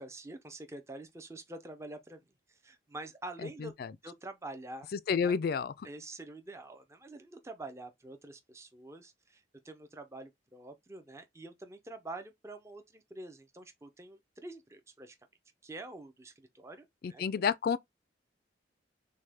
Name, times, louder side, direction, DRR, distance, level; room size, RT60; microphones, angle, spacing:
voice 1, 0.0-2.2 2.5-3.7 4.0-4.9 5.2-5.3 5.8-15.2 15.6-17.2, right 2 dB, 15° right, 0.5 m, -46 dB
voice 2, 3.4-3.9 4.9-5.7 17.0-17.8, left 6 dB, 55° left, 0.3 m, -30 dB
6.3 x 2.2 x 3.4 m
head